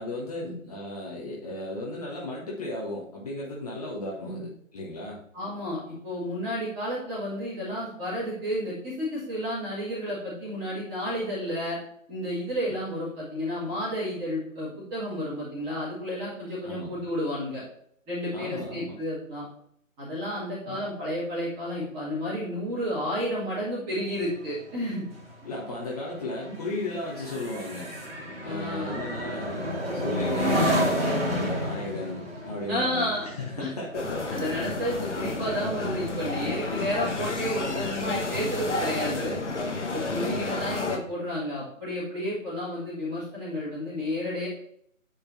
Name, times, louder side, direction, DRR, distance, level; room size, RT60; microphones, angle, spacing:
voice 1, 0.0-5.2 16.6-17.0 18.3-19.0 20.6-20.8 25.4-27.9 28.4-34.2 40.0-40.3, left 1 dB, 30° left, -4 dB, 1.5 m, -35 dB
voice 2, 5.3-11.8 12.1-17.6 18.1-19.4 20.0-25.0 26.4-26.6 26.9-27.0 28.4-29.1 32.7-33.3 33.6-33.7 34.3-39.4 39.9-44.5, equal, 10° right, -8 dB, 2.7 m, -31 dB
sound 1, 24.1-35.8 36.2-36.5, equal, 45° right, 2.2 m, -31 dB
sound 2, 33.9-41.0, left 3 dB, 60° left, 1.5 m, -31 dB
9.3 x 4.4 x 4.2 m, 0.67 s
figure-of-eight pair, 145°, 40 cm